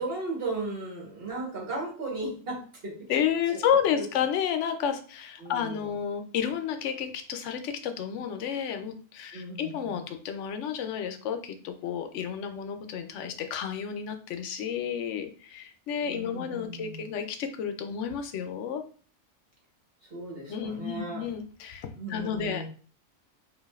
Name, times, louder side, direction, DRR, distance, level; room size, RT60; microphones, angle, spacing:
voice 1, 0.0-2.9 3.9-4.0 5.4-5.9 9.3-10.0 16.1-17.0 20.1-21.3 22.0-22.7, right 2 dB, 55° right, -1 dB, 1.5 m, -36 dB
voice 2, 3.1-18.8 20.5-22.7, left 8 dB, 90° left, 7 dB, 0.9 m, -31 dB
5.0 x 2.6 x 2.4 m, 0.41 s
omnidirectional pair, 1.2 m